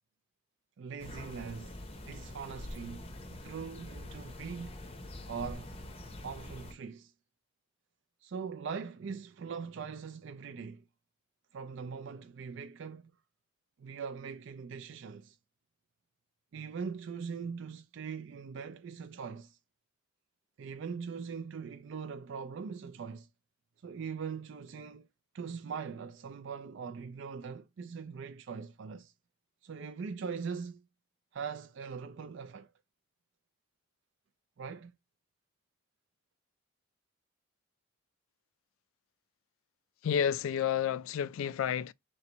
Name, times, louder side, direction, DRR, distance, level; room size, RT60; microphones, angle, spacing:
voice 1, 0.8-1.8 2.1-3.0 3.3-4.7 5.3-5.7 6.2-7.1 8.2-10.8 11.5-13.1 13.8-15.4 16.5-19.6 20.6-23.3 23.8-25.1 25.3-29.1 29.6-30.8 31.3-32.7 34.6-34.9, right 6 dB, 60° right, 0.4 m, -41 dB
sound 1, 1.0-6.7, left 1 dB, 25° left, 0.6 m, -45 dB
voice 2, 40.0-41.9, left 8 dB, 75° left, 0.3 m, -30 dB
3.2 x 3.1 x 3.9 m
head